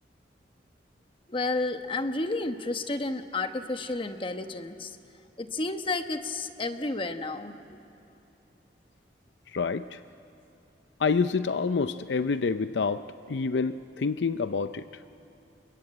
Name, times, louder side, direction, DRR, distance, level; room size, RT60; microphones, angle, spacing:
voice 1, 1.3-5.0 5.4-7.5, left 2 dB, 30° left, 7 dB, 1.1 m, -31 dB
voice 2, 9.5-10.0 11.0-14.9, left 4 dB, 85° left, 12 dB, 0.5 m, -27 dB
29.0 x 22.0 x 8.9 m, 2.8 s
head